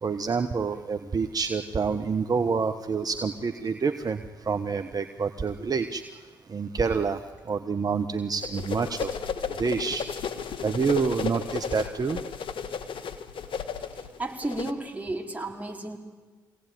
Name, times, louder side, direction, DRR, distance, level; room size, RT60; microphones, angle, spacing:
voice 1, 0.0-4.2 4.4-6.0 6.5-7.2 7.5-9.1 9.6-10.0 10.6-12.2, right 5 dB, 45° right, 8 dB, 1.3 m, -27 dB
sound 1, 8.4-14.7, left 6 dB, 65° left, 1.5 m, -34 dB
voice 2, 14.2-16.0, right 2 dB, 15° right, 1 dB, 4.5 m, -33 dB
24.0 x 17.5 x 9.4 m, 1.4 s
hypercardioid pair, 45°, 9 cm